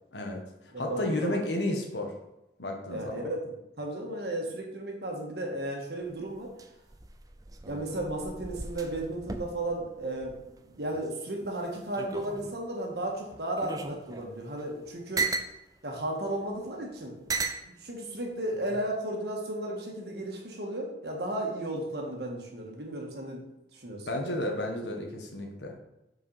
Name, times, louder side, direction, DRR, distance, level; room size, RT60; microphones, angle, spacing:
voice 1, 0.1-2.1 2.6-3.2 24.1-25.8, left 1 dB, 85° left, 2 dB, 1.3 m, -32 dB
voice 2, 0.7-1.4 2.9-6.5 7.7-15.3 15.8-23.4 23.7-24.1, right 1 dB, 65° right, 0 dB, 1.6 m, -34 dB
sound 1, 6.0-11.1 11.4-12.7 13.3-15.5 16.4-16.5 17.3-17.7 18.5-18.9, right 4 dB, 20° right, 0.5 m, -37 dB
5.5 x 4.8 x 5.6 m, 0.92 s
head